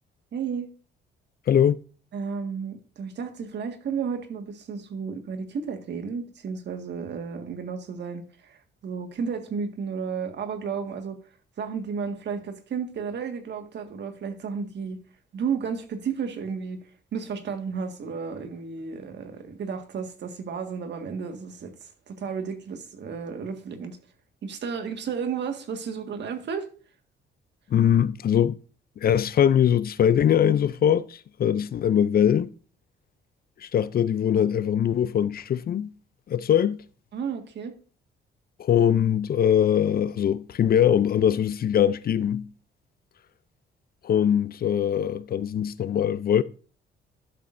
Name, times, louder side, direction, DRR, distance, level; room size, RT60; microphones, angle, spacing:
voice 1, 0.3-0.7 2.1-11.2 11.6-15.0 15.3-16.8 17.1-24.0 24.4-26.7 37.1-37.7, right 6 dB, 60° right, 1.8 m, -33 dB
voice 2, 1.5-1.8 27.7-28.6 29.0-32.5 33.6-35.9 36.3-36.8 38.6-42.5 44.0-46.4, left 9 dB, 50° left, 0.5 m, -22 dB
12.0 x 7.5 x 2.6 m
cardioid pair, 90°, 20 cm